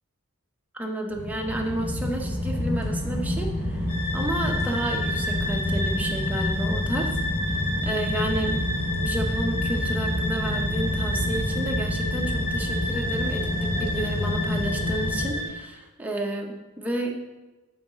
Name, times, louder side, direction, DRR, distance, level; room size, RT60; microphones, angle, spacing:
voice 1, 0.7-3.9 4.1-7.1 7.5-8.7 9.0-17.1, right 1 dB, 5° right, 0 dB, 0.6 m, -31 dB
sound 1, 1.1-15.3, left 1 dB, 30° left, 1.3 m, -28 dB
sound 2, 3.9-15.5, left 1 dB, 75° left, 1.4 m, -31 dB
8.0 x 3.9 x 3.9 m, 1.2 s
head